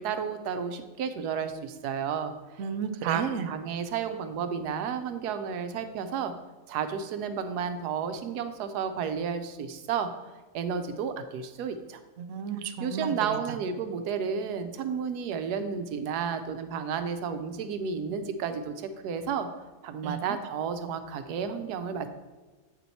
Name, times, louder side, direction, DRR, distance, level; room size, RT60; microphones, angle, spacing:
voice 1, 0.0-2.6 3.0-6.3 6.7-12.0 12.8-19.5 19.8-22.1, right 6 dB, 85° right, 9 dB, 1.2 m, -32 dB
voice 2, 2.6-3.5 12.2-13.6 20.0-20.4, right 6 dB, 65° right, 7 dB, 0.8 m, -33 dB
8.1 x 4.4 x 4.1 m, 1.3 s
omnidirectional pair, 1.7 m